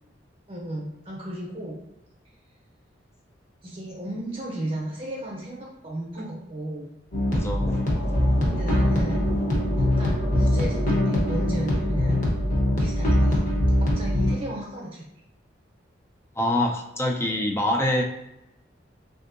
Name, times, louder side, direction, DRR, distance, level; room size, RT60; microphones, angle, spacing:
voice 1, 0.5-1.8 3.6-6.9 8.4-9.3 9.8-12.2 12.8-13.5 13.8-15.1, right 1 dB, 30° right, -4 dB, 0.7 m, -34 dB
love technohouse & peace, 7.1-14.3, left 1 dB, 45° left, 0.8 m, -23 dB
sound 1, 7.3-14.3, left 1 dB, 80° left, 0.8 m, -36 dB
voice 2, 7.3-7.8 16.4-18.0, left 1 dB, 15° left, 0 dB, 0.4 m, -25 dB
3.4 x 2.7 x 2.5 m, 0.91 s
head